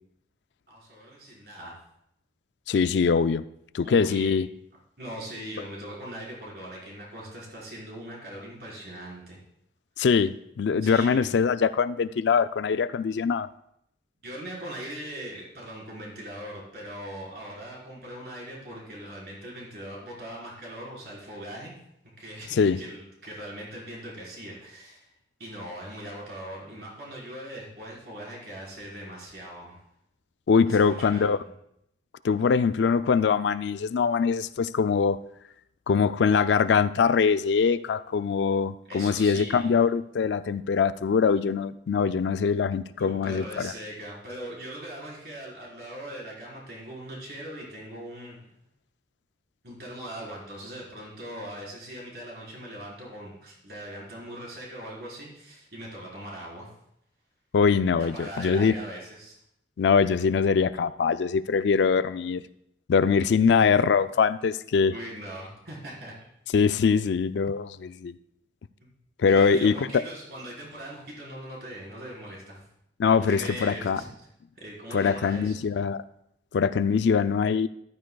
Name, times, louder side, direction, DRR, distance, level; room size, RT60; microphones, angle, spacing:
voice 1, 0.7-1.7 3.8-4.4 5.0-9.4 10.8-11.4 14.2-21.8 22.2-25.1 25.4-29.8 30.7-31.5 38.9-39.8 43.0-48.4 49.6-56.7 57.9-59.4 64.9-66.1 68.8-68.9 69.3-72.7 73.2-74.0 74.6-75.8, right 1 dB, 60° right, -4 dB, 4.2 m, -40 dB
voice 2, 2.7-3.4 3.7-4.5 10.0-13.5 22.5-22.8 30.5-31.4 32.2-35.2 35.9-43.7 57.5-58.7 59.8-62.4 62.9-64.9 66.5-68.2 69.2-70.0 73.0-74.0 74.9-76.0 76.5-77.7, left 5 dB, 80° left, 14 dB, 0.4 m, -23 dB
14.0 x 11.5 x 2.3 m, 0.76 s
head